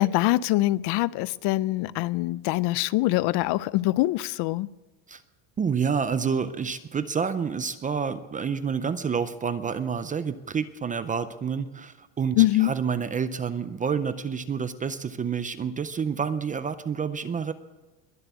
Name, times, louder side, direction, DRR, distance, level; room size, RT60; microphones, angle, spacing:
voice 1, 0.0-4.7 12.4-12.7, left 17 dB, 60° left, 0.5 m, -24 dB
voice 2, 5.6-17.5, right 6 dB, 20° right, 0.4 m, -28 dB
21.5 x 7.6 x 8.2 m
cardioid pair, 155°, 45 cm